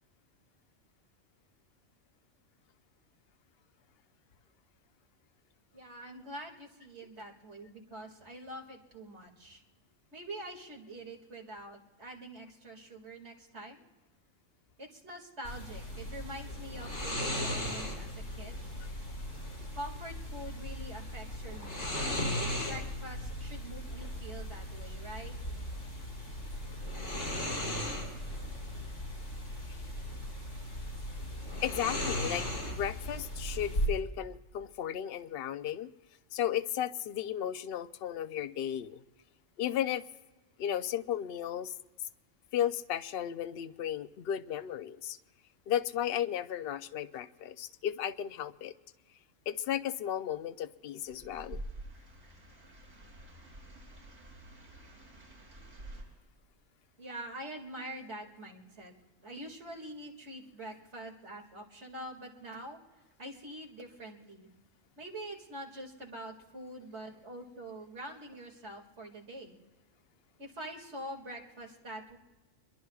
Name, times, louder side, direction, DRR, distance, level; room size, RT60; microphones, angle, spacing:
voice 1, 5.7-9.6 10.1-13.8 14.8-18.6 19.7-25.3 57.0-58.9 59.2-62.8 63.2-64.5 65.0-69.6 70.4-72.2, right 1 dB, 60° right, 0 dB, 2.5 m, -45 dB
sound 1, 15.4-33.9, left 1 dB, 80° left, 5.4 m, -37 dB
voice 2, 31.6-35.9 36.3-39.0 39.6-40.0 40.6-41.7 42.5-45.2 45.7-48.7 49.5-51.6, left 10 dB, 60° left, 11 dB, 0.8 m, -34 dB
sound 2, 51.0-56.0, right 1 dB, 85° right, 6.6 m, -48 dB
26.0 x 22.5 x 2.4 m, 1.2 s
omnidirectional pair, 1.3 m